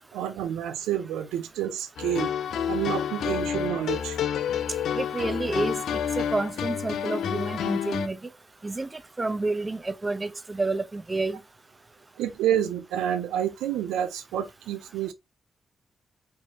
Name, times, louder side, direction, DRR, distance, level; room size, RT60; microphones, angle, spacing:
voice 1, 0.1-2.3 2.7-4.2 12.2-15.1, right 10 dB, 90° right, 0.5 m, -29 dB
sound 1, 2.0-8.1, left 9 dB, 80° left, 0.4 m, -29 dB
voice 2, 4.9-5.8 6.2-8.2 8.6-11.4, right 3 dB, 30° right, 0.6 m, -29 dB
4.6 x 2.9 x 2.7 m
supercardioid pair, 45°, 0 cm